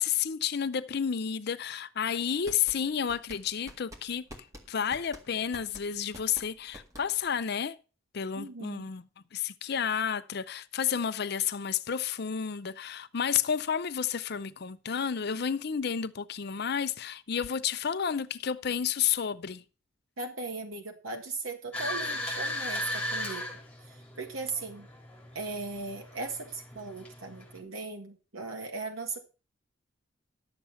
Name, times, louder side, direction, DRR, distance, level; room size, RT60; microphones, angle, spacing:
voice 1, 0.0-4.2 4.7-7.8 8.1-9.0 9.3-19.6, left 8 dB, 50° left, 0.5 m, -31 dB
sound 1, 2.2-7.4, equal, 15° right, 1.8 m, -48 dB
voice 2, 8.3-8.9 20.2-23.5 23.8-24.9 25.3-29.2, right 3 dB, 75° right, 1.6 m, -38 dB
sound 2, 21.7-27.6, left 1 dB, 5° left, 3.0 m, -37 dB
11.5 x 7.2 x 5.6 m
head